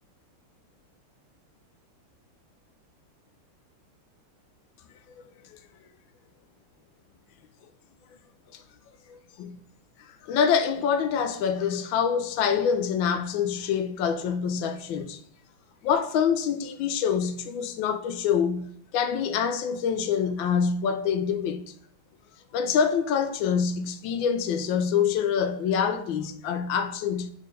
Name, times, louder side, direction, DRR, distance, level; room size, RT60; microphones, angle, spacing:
voice 1, 9.1-9.6 10.2-15.2 15.8-21.6 22.5-27.3, left 7 dB, 75° left, 1.3 m, -26 dB
5.2 x 4.3 x 5.1 m
omnidirectional pair, 2.4 m